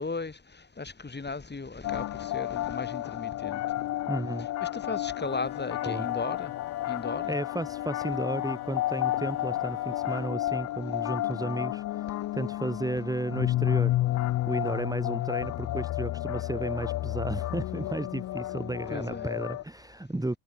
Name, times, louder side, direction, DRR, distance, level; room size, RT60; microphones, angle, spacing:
voice 1, 0.0-3.8 4.6-6.5 6.8-7.3 18.9-19.4, left 4 dB, 20° left, 5.6 m, -36 dB
sound 1, 1.8-19.6, left 15 dB, 40° left, 0.4 m, -31 dB
voice 2, 4.1-4.5 5.8-6.1 7.3-14.0 14.5-20.4, right 2 dB, 10° right, 2.0 m, -33 dB
Wind instrument woodwind instrument, 5.0-10.5, left 11 dB, 55° left, 3.5 m, -48 dB
hypercardioid pair, 70°, 46 cm